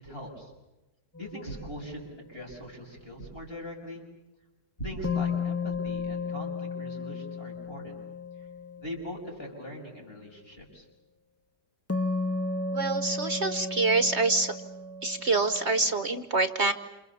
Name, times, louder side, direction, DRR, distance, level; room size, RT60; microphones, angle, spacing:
voice 1, 0.0-0.5 1.2-4.0 4.8-7.9 8.8-10.9, equal, 35° left, 0 dB, 6.9 m, -41 dB
sound 1, 1.1-2.6 5.0-9.5 11.9-16.1, left 3 dB, 10° left, 0.7 m, -34 dB
voice 2, 12.7-14.5 15.0-16.7, right 3 dB, 45° right, 10 dB, 1.2 m, -26 dB
28.5 x 28.0 x 7.0 m, 1.0 s
omnidirectional pair, 1.8 m